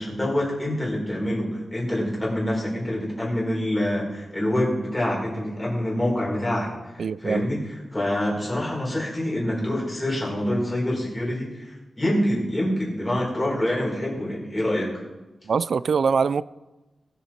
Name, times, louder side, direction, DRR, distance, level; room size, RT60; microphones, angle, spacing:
voice 1, 0.0-6.7 6.9-7.6 7.9-15.0, left 1 dB, 15° left, 4.5 m, -26 dB
voice 2, 7.0-7.5 15.4-16.4, right 5 dB, 65° right, 0.3 m, -23 dB
20.5 x 7.1 x 4.4 m
wide cardioid pair, 145°, 0 cm